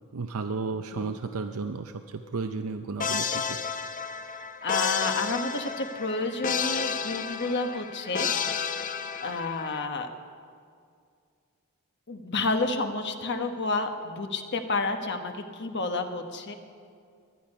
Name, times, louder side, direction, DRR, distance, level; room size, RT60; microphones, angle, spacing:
voice 1, 0.1-3.6, right 4 dB, 80° right, 7 dB, 0.6 m, -33 dB
sound 1, 3.0-9.9, left 6 dB, 35° left, 0.6 m, -31 dB
voice 2, 4.6-8.8 9.2-10.1 12.1-16.5, left 3 dB, 55° left, 6 dB, 1.2 m, -30 dB
19.5 x 12.0 x 5.5 m, 2.2 s
head